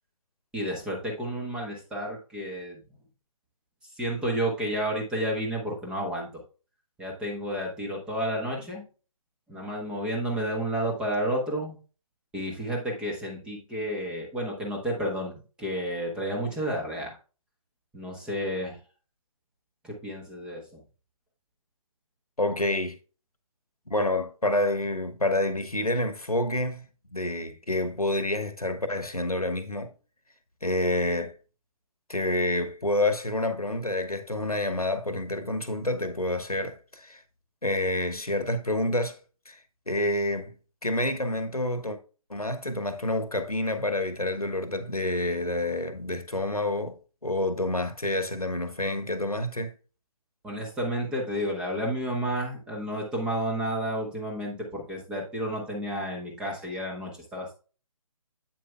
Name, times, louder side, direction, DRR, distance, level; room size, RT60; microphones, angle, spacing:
voice 1, 0.5-2.8 4.0-6.4 7.0-8.8 9.5-11.8 12.3-17.2 17.9-18.8 19.8-20.8 50.4-57.5, equal, 5° right, 1.1 m, -31 dB
voice 2, 22.4-23.0 23.9-29.9 30.6-31.3 32.1-37.2 37.6-39.2 39.4-39.6 39.9-40.5 40.8-42.0 42.3-47.0 47.2-49.7, left 1 dB, 85° left, 1.3 m, -28 dB
8.7 x 7.4 x 2.3 m
figure-of-eight pair, 145°, 18 cm